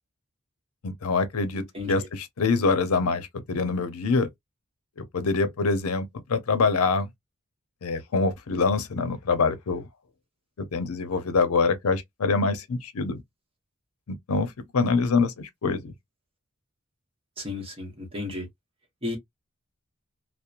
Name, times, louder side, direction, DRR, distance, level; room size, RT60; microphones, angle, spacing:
voice 1, 0.8-4.3 5.0-7.1 7.8-9.9 10.6-13.2 14.1-15.9, left 4 dB, 75° left, 0.6 m, -25 dB
voice 2, 17.4-18.5 19.0-19.2, left 2 dB, 25° right, 1.0 m, -33 dB
2.9 x 2.0 x 2.4 m
head